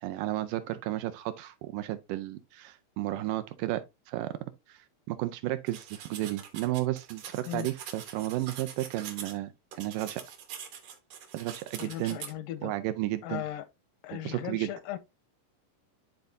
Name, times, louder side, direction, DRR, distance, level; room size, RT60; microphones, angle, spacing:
voice 1, 0.0-4.4 4.7-10.2 11.3-12.2 12.6-13.4 14.1-14.7, right 15 dB, 80° right, 2.1 m, -33 dB
sound 1, 5.7-9.3 9.7-12.3, right 8 dB, 60° right, 1.8 m, -44 dB
voice 2, 11.8-12.7 13.2-13.7 14.0-15.0, left 12 dB, 85° left, 2.2 m, -37 dB
11.5 x 3.9 x 2.6 m
omnidirectional pair, 4.0 m